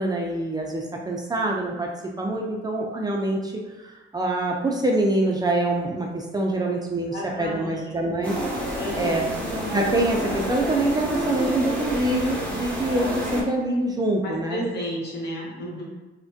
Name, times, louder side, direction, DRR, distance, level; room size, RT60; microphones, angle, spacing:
voice 1, 0.0-1.9 2.2-3.5 4.1-8.4 9.0-9.3 9.7-14.6, right 2 dB, 20° right, -1 dB, 0.4 m, -25 dB
voice 2, 7.1-8.2 8.7-9.3 14.2-15.8, equal, 55° left, -3 dB, 1.0 m, -33 dB
sound 1, 8.2-13.4, equal, 5° left, 0.9 m, -29 dB
3.3 x 2.1 x 2.6 m, 1.2 s
cardioid pair, 90°, 20 cm